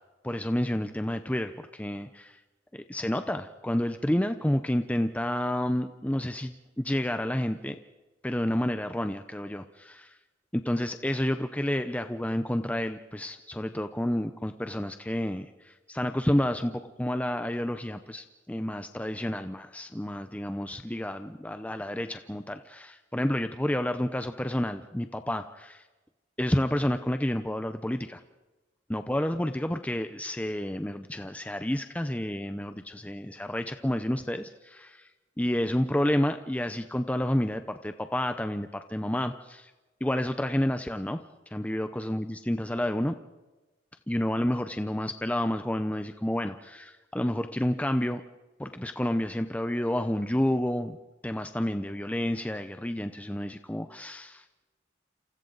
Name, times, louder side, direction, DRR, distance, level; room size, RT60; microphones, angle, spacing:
voice 1, 0.2-2.4 2.7-7.8 8.2-10.2 10.5-25.8 26.4-28.2 28.9-35.1 35.4-39.7 40.0-43.1 44.1-48.2 48.6-51.0 51.2-54.6, left 1 dB, 10° left, 8 dB, 0.7 m, -30 dB
29.0 x 28.0 x 4.0 m, 1.1 s
head